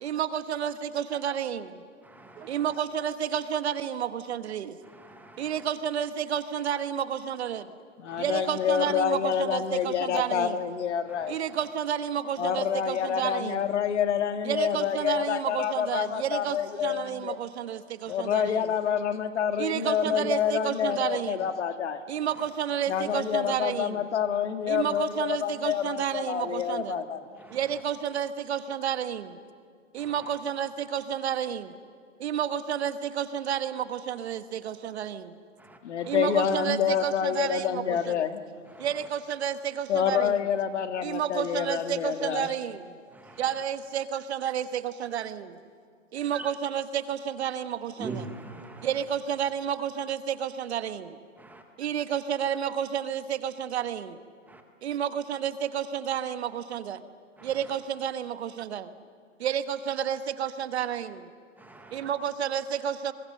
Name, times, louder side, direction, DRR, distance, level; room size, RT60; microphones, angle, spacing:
voice 1, 0.0-1.8 2.4-4.8 5.4-7.7 8.2-10.6 11.3-13.7 14.4-18.7 19.6-21.5 22.1-24.0 24.7-27.0 27.5-29.4 29.9-31.7 32.2-35.4 36.1-38.3 38.8-40.5 41.0-42.9 43.4-45.5 46.1-48.2 48.8-51.2 51.8-54.2 54.8-57.0 57.4-58.9 59.4-61.3 61.9-63.1, right 9 dB, 55° right, 1.4 m, -31 dB
voice 2, 5.0-5.4 27.4-27.6 38.8-38.9 48.0-48.9 51.4-51.6 54.5-54.6 61.6-62.1, right 3 dB, 5° right, 0.8 m, -41 dB
voice 3, 8.0-11.4 12.4-17.4 18.1-22.0 22.9-27.2 35.8-38.4 39.9-42.5, left 8 dB, 60° left, 1.8 m, -28 dB
29.0 x 22.5 x 6.7 m
hypercardioid pair, 150°, 39 cm